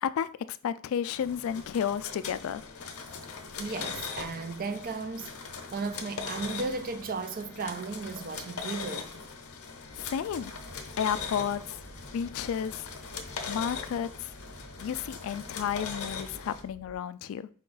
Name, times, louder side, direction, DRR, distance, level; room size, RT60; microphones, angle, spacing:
voice 1, 0.0-2.6 10.0-10.5 11.0-11.8 12.1-12.9 13.5-14.3 14.8-17.5, left 8 dB, 65° left, 0.3 m, -32 dB
sound 1, 1.1-16.6, left 5 dB, 90° left, 0.7 m, -40 dB
voice 2, 3.6-5.3 5.7-9.1, right 4 dB, 40° right, 0.4 m, -35 dB
sound 2, 9.9-17.0, right 1 dB, 70° right, 0.8 m, -50 dB
5.0 x 2.3 x 3.8 m
head